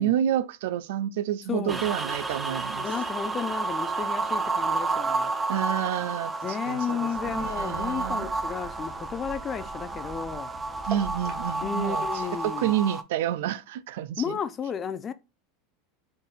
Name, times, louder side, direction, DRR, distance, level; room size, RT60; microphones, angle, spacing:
voice 1, 0.0-2.9 5.5-7.0 7.3-8.3 10.9-14.4, right 11 dB, 70° right, 0.3 m, -29 dB
voice 2, 1.5-1.9 2.8-5.3 6.4-10.5 11.6-12.7 14.2-15.1, left 7 dB, 30° left, 0.5 m, -33 dB
sound 1, 1.7-13.0, right 3 dB, 15° right, 0.5 m, -31 dB
sound 2, 7.1-12.9, right 5 dB, 40° right, 1.2 m, -43 dB
3.9 x 3.8 x 2.4 m
hypercardioid pair, 90°, 0 cm